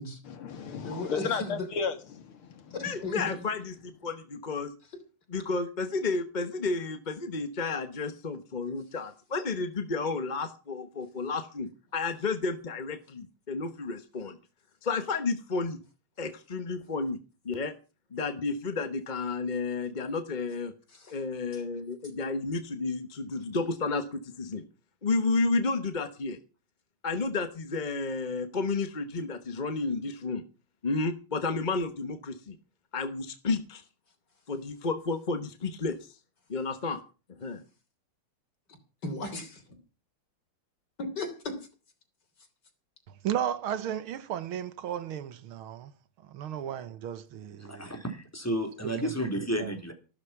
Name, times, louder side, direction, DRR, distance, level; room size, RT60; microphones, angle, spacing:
voice 1, 0.3-2.8, left 5 dB, 75° left, 2.6 m, -34 dB
voice 2, 0.8-1.7 2.7-3.3 20.9-21.2 21.5-21.6 39.0-39.6 41.0-41.6, left 2 dB, 50° left, 3.9 m, -36 dB
voice 3, 2.8-3.7 4.0-4.7 5.3-14.4 14.8-15.8 16.2-17.2 17.4-17.7 18.1-20.7 21.1-24.6 25.0-26.4 27.0-30.4 30.8-32.6 32.9-33.8 34.5-36.0 36.5-37.0 37.4-37.6, left 3 dB, 30° left, 1.0 m, -31 dB
voice 4, 43.2-45.9 46.3-47.9 48.8-49.1 49.6-49.7, right 10 dB, 75° right, 1.9 m, -34 dB
voice 5, 47.6-49.9, equal, 5° left, 3.5 m, -32 dB
15.0 x 12.5 x 5.9 m
omnidirectional pair, 2.4 m